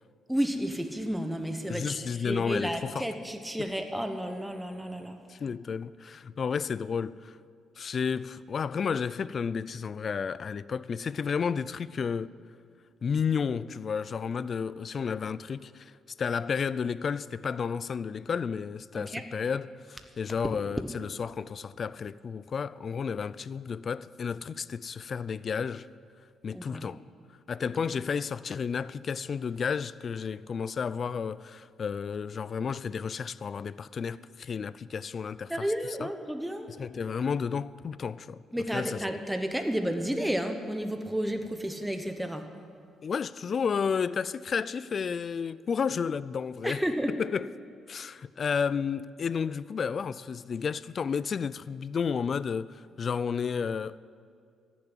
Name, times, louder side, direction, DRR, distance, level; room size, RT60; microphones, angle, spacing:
voice 1, 0.3-5.2 18.9-19.2 26.5-26.9 35.5-36.7 38.5-42.5 46.6-47.2, equal, 5° right, 1.0 m, -32 dB
voice 2, 1.7-3.1 3.6-3.7 5.3-7.4 7.8-12.3 13.0-15.9 16.2-25.9 26.4-27.0 27.5-35.7 36.0-36.1 36.7-39.0 43.0-46.8 47.2-47.5 47.9-54.0, left 6 dB, 45° left, 0.3 m, -32 dB
15.0 x 7.1 x 9.9 m
cardioid pair, 90°, 0 cm